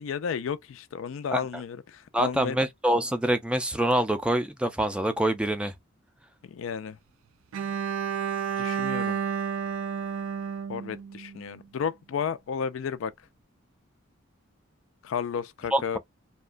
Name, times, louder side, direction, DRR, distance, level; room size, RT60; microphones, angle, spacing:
voice 1, 0.0-2.6 6.4-7.0 8.6-9.2 10.7-13.1 15.0-16.0, left 7 dB, 70° left, 0.4 m, -32 dB
voice 2, 2.1-5.7 15.7-16.0, right 1 dB, 5° right, 0.3 m, -25 dB
Bowed string instrument, 7.5-11.6, right 7 dB, 90° right, 0.3 m, -31 dB
2.8 x 2.2 x 2.5 m
head